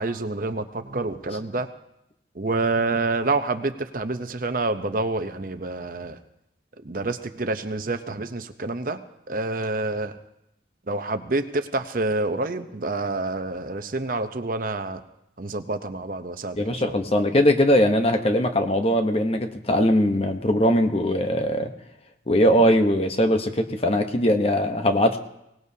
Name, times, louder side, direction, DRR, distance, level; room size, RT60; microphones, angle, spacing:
voice 1, 0.0-1.7 2.4-6.2 6.8-9.0 9.3-10.1 10.9-15.0 15.4-16.9, right 3 dB, 50° right, 8 dB, 0.8 m, -27 dB
voice 2, 16.6-21.7 22.3-25.2, equal, 35° left, 6 dB, 1.0 m, -20 dB
23.5 x 18.0 x 2.8 m, 0.84 s
head